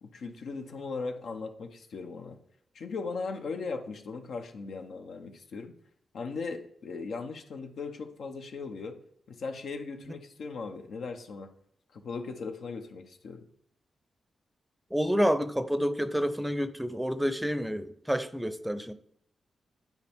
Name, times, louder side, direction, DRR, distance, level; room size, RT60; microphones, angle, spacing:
voice 1, 0.0-2.4 2.7-5.7 6.1-9.0 9.3-11.5 11.9-13.4, left 4 dB, 75° left, 0.8 m, -38 dB
voice 2, 14.9-18.9, equal, 5° right, 0.6 m, -29 dB
9.4 x 4.6 x 3.6 m
cardioid pair, 60°, 0 cm